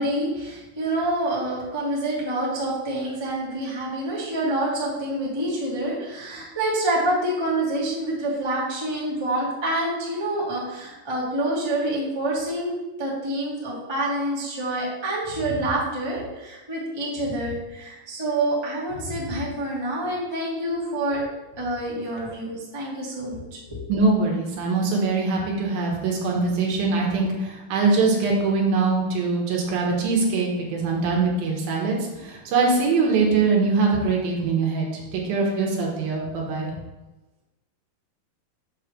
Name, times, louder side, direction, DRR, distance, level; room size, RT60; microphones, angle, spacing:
voice 1, 0.0-12.7 13.0-21.2 21.6-23.6, right 1 dB, 25° right, -6 dB, 0.5 m, -27 dB
voice 2, 23.9-32.0 32.2-34.9 35.1-36.7, right 4 dB, 75° right, -1 dB, 3.0 m, -22 dB
7.9 x 3.3 x 6.4 m, 1.0 s
omnidirectional pair, 4.4 m